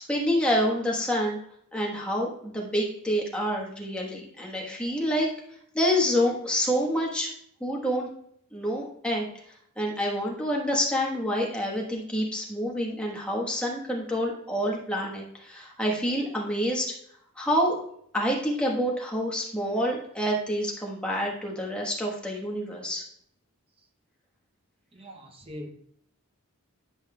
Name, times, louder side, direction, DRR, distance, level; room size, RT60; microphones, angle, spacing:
voice 1, 0.1-1.4 1.7-5.3 5.7-7.3 7.6-8.1 8.5-9.3 9.8-16.9 17.4-17.8 18.1-23.0, equal, 5° left, 1.2 m, -27 dB
voice 2, 24.9-25.7, equal, 25° right, 0.8 m, -41 dB
10.5 x 5.5 x 2.3 m
head